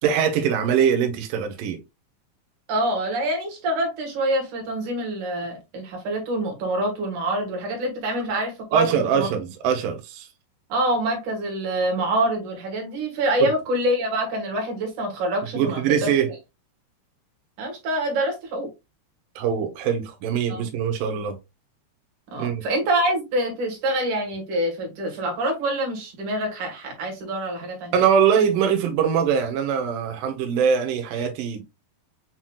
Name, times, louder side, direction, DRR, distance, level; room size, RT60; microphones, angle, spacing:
voice 1, 0.0-1.8 8.7-10.3 13.4-13.5 15.5-16.3 19.4-21.4 22.4-22.6 27.9-31.6, right 7 dB, 75° right, 2.1 m, -22 dB
voice 2, 2.7-9.3 10.7-16.1 17.6-18.7 20.5-20.7 22.3-28.0, right 1 dB, 55° right, 2.8 m, -26 dB
7.5 x 2.9 x 2.3 m
omnidirectional pair, 4.6 m